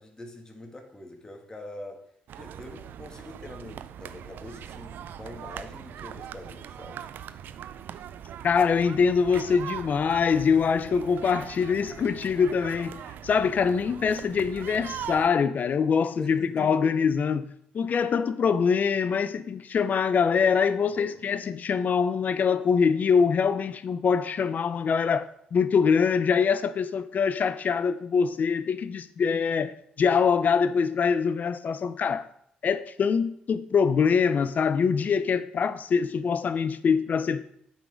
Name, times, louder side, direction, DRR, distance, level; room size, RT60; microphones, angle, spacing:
voice 1, 0.0-2.0 2.4-7.0 16.2-16.7 20.9-21.2, left 1 dB, 20° left, 1.5 m, -44 dB
sound 1, 2.3-15.3, right 9 dB, 70° right, 0.4 m, -41 dB
voice 2, 8.4-29.7 30.0-32.3 32.6-37.4, left 6 dB, 50° left, 0.5 m, -24 dB
8.2 x 3.8 x 5.1 m
supercardioid pair, 60°, 3 cm